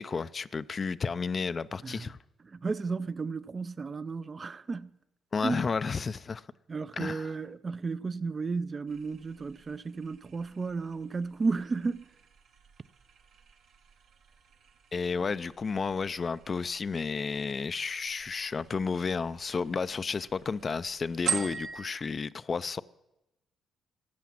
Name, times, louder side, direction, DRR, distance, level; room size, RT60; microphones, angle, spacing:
voice 1, 0.0-2.2 5.3-6.4 6.9-7.3 14.9-22.8, left 5 dB, 40° left, 0.4 m, -32 dB
voice 2, 2.5-4.9 5.4-5.7 6.7-12.1, right 4 dB, 35° right, 0.4 m, -33 dB
sound 1, 8.9-21.9, right 6 dB, 80° right, 1.5 m, -43 dB
14.0 x 8.3 x 7.4 m
cardioid pair, 90°, 0 cm